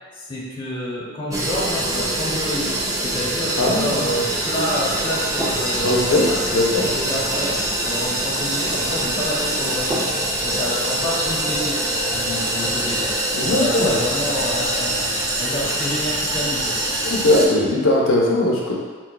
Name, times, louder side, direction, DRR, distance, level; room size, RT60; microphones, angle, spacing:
voice 1, 0.1-2.8 3.0-6.4 6.8-10.0 10.4-13.1 13.4-14.9 15.4-16.8, equal, 25° left, -6 dB, 0.8 m, -28 dB
sound 1, 1.3-17.5, right 1 dB, 15° right, 0.4 m, -24 dB
voice 2, 3.6-4.2 5.8-6.2 6.5-6.8 13.3-13.9 17.0-18.7, left 1 dB, 80° left, -3 dB, 0.7 m, -19 dB
4.5 x 2.3 x 2.3 m, 1.5 s
head